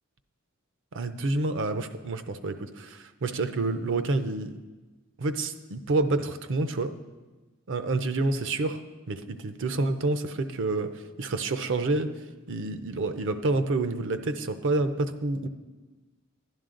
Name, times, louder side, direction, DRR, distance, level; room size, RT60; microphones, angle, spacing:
voice 1, 0.9-4.5 5.2-6.9 7.7-8.8 9.1-12.1 12.5-15.5, right 2 dB, 65° right, 10 dB, 0.6 m, -28 dB
11.0 x 10.5 x 3.8 m, 1.2 s
head